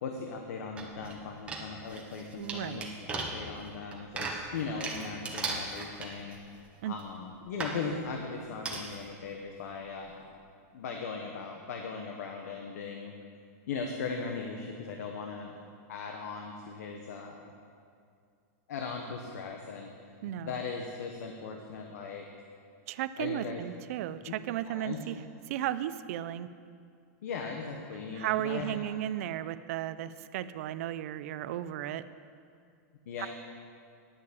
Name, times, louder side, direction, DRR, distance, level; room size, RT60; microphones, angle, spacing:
voice 1, 0.0-6.4 6.8-10.4 10.7-13.1 13.7-15.5 15.9-17.5 18.7-19.9 20.2-22.2 23.2-23.6 24.3-24.4 24.6-25.0 27.2-28.9 33.1-33.3, left 5 dB, 80° left, 3 dB, 1.1 m, -38 dB
sound 1, 0.8-1.1 1.5-6.5 7.0-7.1 7.6-7.8 8.7-9.1 9.5-9.6 9.8-9.9, right 3 dB, 15° right, 1.2 m, -37 dB
voice 2, 2.4-2.9 6.8-6.9 20.2-20.5 22.9-25.2 25.5-26.5 28.1-32.0 33.2-33.3, right 12 dB, 60° right, 13 dB, 0.5 m, -34 dB
10.0 x 6.6 x 8.4 m, 2.3 s
supercardioid pair, 155°, 9 cm